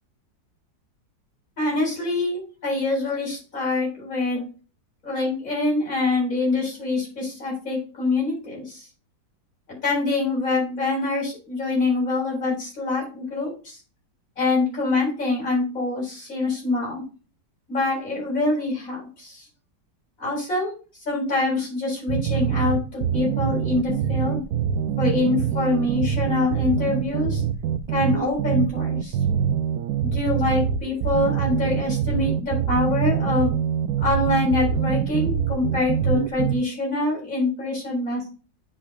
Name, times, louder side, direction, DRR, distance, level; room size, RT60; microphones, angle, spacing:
voice 1, 1.6-4.4 5.0-8.9 9.8-13.8 14.4-17.0 17.7-19.5 20.2-20.7 21.0-24.4 25.0-27.4 27.9-29.2 30.0-33.5 34.0-38.3, left 3 dB, 45° left, -4 dB, 4.8 m, -25 dB
sound 1, 22.1-36.5, right 8 dB, 70° right, 0.9 m, -24 dB
9.8 x 5.6 x 2.2 m, 0.35 s
omnidirectional pair, 1.9 m